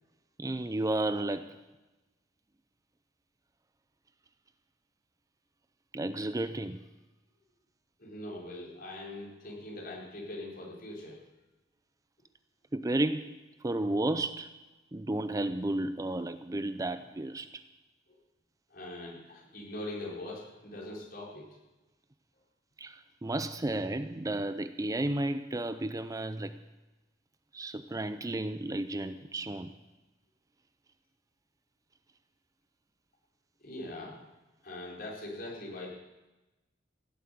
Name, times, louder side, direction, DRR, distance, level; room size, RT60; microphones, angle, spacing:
voice 1, 0.4-1.5 5.9-6.8 12.7-14.5 14.9-17.6 22.8-26.6 27.5-29.7, right 1 dB, 20° right, 11 dB, 0.5 m, -32 dB
voice 2, 8.0-11.2 18.1-18.2 18.7-21.5 33.6-34.2 34.6-35.9, left 1 dB, 50° left, -4 dB, 4.6 m, -42 dB
16.5 x 8.2 x 9.3 m, 1.1 s
head